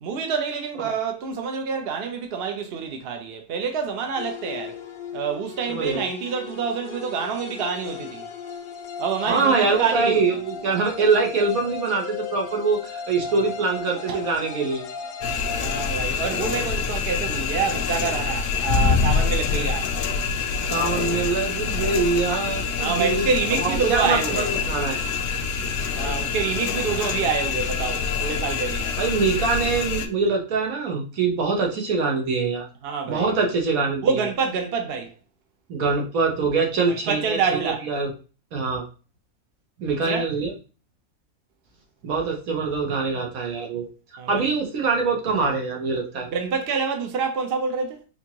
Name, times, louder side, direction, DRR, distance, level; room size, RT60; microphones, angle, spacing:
voice 1, 0.0-4.8 5.1-8.3 9.0-10.2 13.3-13.4 14.1-14.2 15.6-19.9 22.8-24.5 25.9-28.9 32.8-33.3 34.0-35.1 37.1-37.9 40.0-40.3 44.2-44.5 46.3-48.1, right 5 dB, 55° right, 0.7 m, -27 dB
sound 1, 4.2-16.0, left 5 dB, 65° left, 0.7 m, -36 dB
voice 2, 5.7-6.0 9.3-14.8 20.6-23.2 23.5-25.1 29.0-32.7 33.1-34.2 35.7-38.1 38.5-38.8 39.8-40.5 42.0-43.9 44.3-46.3, right 4 dB, 70° right, 1.4 m, -24 dB
sound 2, 15.2-30.1, left 5 dB, 90° left, 1.1 m, -26 dB
4.4 x 2.6 x 2.9 m
omnidirectional pair, 1.5 m